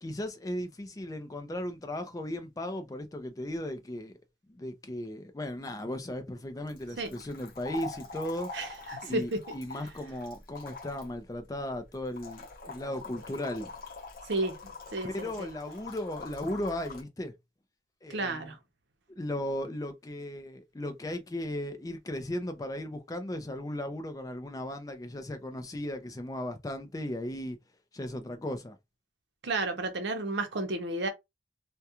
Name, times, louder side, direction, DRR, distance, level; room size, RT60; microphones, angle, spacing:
voice 1, 0.0-4.2 4.5-8.8 9.0-13.7 15.0-17.3 18.0-18.5 19.2-27.6 27.9-28.8, left 1 dB, 20° left, 0.4 m, -36 dB
sound 1, 6.7-17.0, left 3 dB, 50° left, 0.7 m, -44 dB
voice 2, 8.5-9.4 14.3-14.5 14.9-15.5 18.1-18.6 29.4-31.1, right 2 dB, 65° right, 0.7 m, -32 dB
2.4 x 2.2 x 2.8 m
head